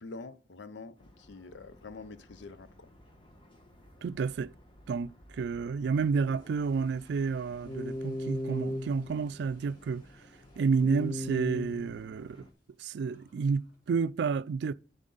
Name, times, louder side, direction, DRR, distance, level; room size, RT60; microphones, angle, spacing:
voice 1, 0.0-2.9, left 3 dB, 85° left, 0.6 m, -46 dB
sound 1, 1.0-12.5, left 1 dB, 30° left, 1.2 m, -42 dB
voice 2, 4.0-4.5 4.9-10.1 10.6-12.5 12.8-14.7, right 5 dB, 65° right, 0.3 m, -30 dB
Toilet flush, 6.1-13.8, right 1 dB, 55° left, 3.2 m, -64 dB
8.0 x 7.4 x 3.9 m
head